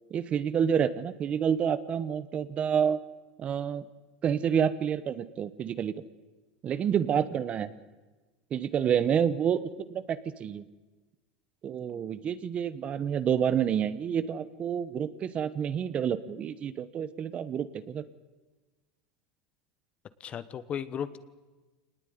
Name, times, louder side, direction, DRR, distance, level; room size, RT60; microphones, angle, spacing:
voice 1, 0.1-3.0 3.4-3.9 4.2-5.9 6.6-7.7 8.5-10.6 11.6-18.0, right 8 dB, 30° right, 15 dB, 1.1 m, -28 dB
voice 2, 20.2-21.2, left 8 dB, 30° left, 14 dB, 1.3 m, -35 dB
26.0 x 19.5 x 9.6 m, 1.3 s
supercardioid pair, 135°, 4 cm